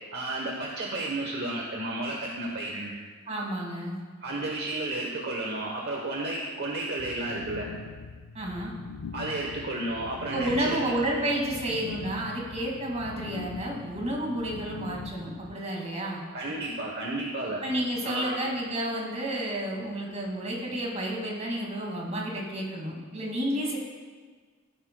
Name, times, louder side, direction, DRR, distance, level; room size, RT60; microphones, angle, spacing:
voice 1, 0.1-2.9 4.2-7.7 9.1-10.8 16.3-17.6 18.0-18.4, right 2 dB, 55° right, -1 dB, 1.0 m, -32 dB
voice 2, 3.3-3.9 8.3-8.7 10.3-16.2 17.6-23.8, right 1 dB, 35° right, -2 dB, 2.1 m, -31 dB
sound 1, 7.0-15.5, left 5 dB, 70° left, 0.4 m, -42 dB
15.5 x 7.9 x 2.2 m, 1.5 s
head